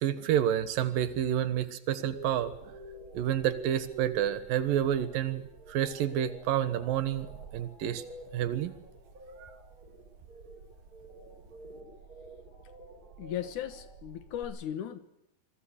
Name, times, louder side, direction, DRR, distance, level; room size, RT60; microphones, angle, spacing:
voice 1, 0.0-2.5 3.1-8.0 8.3-8.7 9.4-9.5, right 10 dB, 75° right, 13 dB, 3.0 m, -29 dB
sound 1, 2.1-14.4, right 4 dB, 25° right, 6.5 m, -47 dB
voice 2, 13.2-15.0, left 10 dB, 65° left, 11 dB, 2.6 m, -37 dB
26.0 x 23.0 x 6.6 m, 0.82 s
omnidirectional pair, 4.0 m